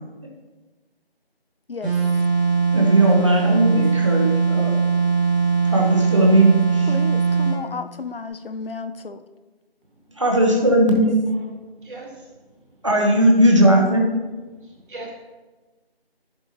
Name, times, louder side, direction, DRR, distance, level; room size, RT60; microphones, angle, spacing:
sound 1, 1.8-7.6, right 5 dB, 10° right, 1.6 m, -20 dB
voice 1, 2.7-4.8 5.6-6.9 10.2-11.2 12.8-14.1, right 1 dB, 30° right, -1 dB, 1.0 m, -17 dB
voice 2, 6.9-9.2, left 4 dB, 65° left, 12 dB, 0.5 m, -33 dB
voice 3, 11.8-12.3 14.6-15.1, right 2 dB, 55° right, 0 dB, 1.9 m, -39 dB
11.5 x 4.9 x 2.9 m, 1.2 s
figure-of-eight pair, 175°, 31 cm